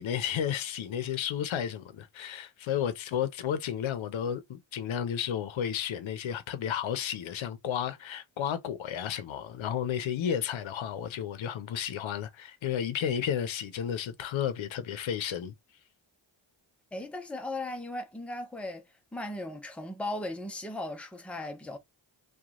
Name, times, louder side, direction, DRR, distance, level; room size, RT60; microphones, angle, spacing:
voice 1, 0.0-15.5, left 9 dB, 80° left, 0.7 m, -32 dB
voice 2, 16.9-21.8, left 1 dB, 5° left, 0.5 m, -37 dB
2.9 x 2.3 x 2.4 m
cardioid pair, 90°, 47 cm